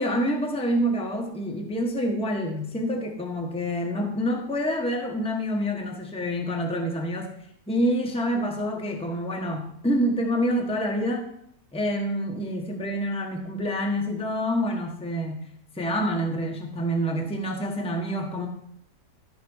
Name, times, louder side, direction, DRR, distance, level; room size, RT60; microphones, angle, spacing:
voice 1, 0.0-7.3 7.7-11.3 11.7-15.4 15.7-18.5, equal, 5° left, 1 dB, 1.0 m, -27 dB
12.5 x 4.2 x 6.2 m, 0.72 s
omnidirectional pair, 1.9 m